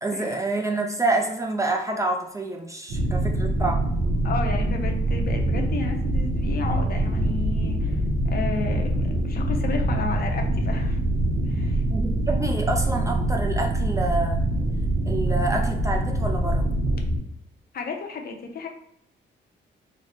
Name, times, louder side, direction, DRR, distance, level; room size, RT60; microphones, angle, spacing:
voice 1, 0.0-3.8 11.9-14.4 15.1-16.7, right 2 dB, 15° right, 1 dB, 0.3 m, -27 dB
sound 1, 2.9-17.2, right 1 dB, 75° right, 0.7 m, -24 dB
voice 2, 4.2-8.0 8.3-11.0 11.5-11.8 17.7-18.7, left 4 dB, 50° left, 3 dB, 0.6 m, -32 dB
3.2 x 2.0 x 3.9 m, 0.75 s
cardioid pair, 120°, 20 cm